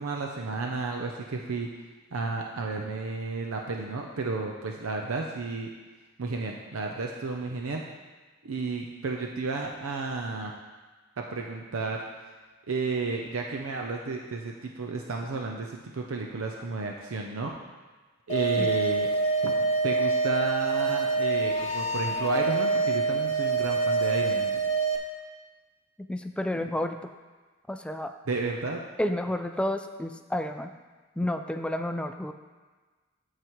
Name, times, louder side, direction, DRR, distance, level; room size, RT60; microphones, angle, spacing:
voice 1, 0.0-1.7 2.1-5.7 6.2-7.8 8.4-10.5 11.2-12.0 12.7-17.5 18.3-19.1 19.4-19.5 19.8-24.6 26.6-26.7 28.3-28.8, right 3 dB, 75° right, 1 dB, 0.6 m, -32 dB
sound 1, 18.3-25.0, right 3 dB, 35° left, 0.9 m, -26 dB
voice 2, 26.1-27.1 27.7-28.1 29.0-30.7 31.2-32.3, left 1 dB, 5° left, 7 dB, 0.3 m, -30 dB
13.5 x 4.8 x 3.0 m, 1.3 s
head